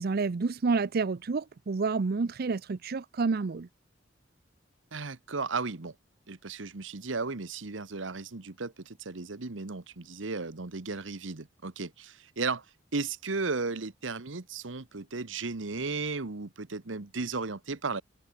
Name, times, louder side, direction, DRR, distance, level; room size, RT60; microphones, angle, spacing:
voice 1, 0.0-3.7, right 4 dB, 55° right, 0.5 m, -29 dB
voice 2, 4.9-5.9 6.3-12.7 12.9-18.0, right 4 dB, 85° right, 1.3 m, -35 dB
head